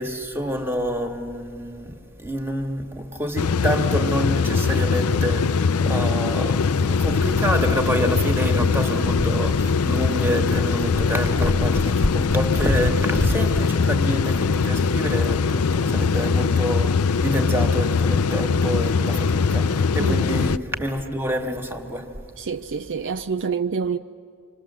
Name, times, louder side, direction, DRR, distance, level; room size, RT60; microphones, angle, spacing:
voice 1, 0.0-22.2, equal, 10° right, 1.7 m, -27 dB
sound 1, 3.4-20.6, left 5 dB, 80° left, 0.5 m, -21 dB
voice 2, 20.0-20.3 22.4-24.0, right 5 dB, 55° right, 0.5 m, -27 dB
26.5 x 25.5 x 7.5 m
head